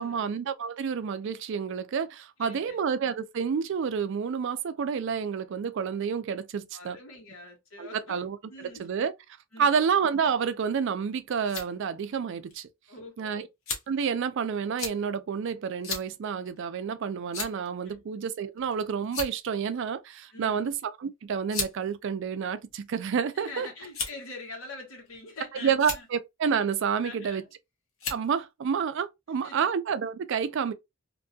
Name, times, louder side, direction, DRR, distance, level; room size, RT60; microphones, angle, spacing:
voice 1, 0.0-7.0 7.8-9.1 9.6-12.7 13.2-13.5 13.9-23.7 25.6-27.4 28.1-30.7, right 6 dB, 60° right, 0.4 m, -29 dB
voice 2, 2.4-2.8 6.7-8.9 9.5-9.8 12.9-13.5 17.8-18.0 20.3-20.7 23.3-26.1 27.0-27.5 29.4-29.7, left 2 dB, 90° left, 1.2 m, -44 dB
sound 1, 11.1-11.7 12.5-12.6 13.7-14.0 14.8-15.0 15.8-16.1 16.4-16.6 17.3-17.7 18.6-18.7 19.0-19.5 20.6-20.8 21.5-21.7 22.6-23.1 23.9-24.3 25.1-25.4 25.7-26.0 27.2-27.5 28.0-28.3, left 4 dB, 70° left, 0.9 m, -34 dB
2.6 x 2.3 x 2.6 m
head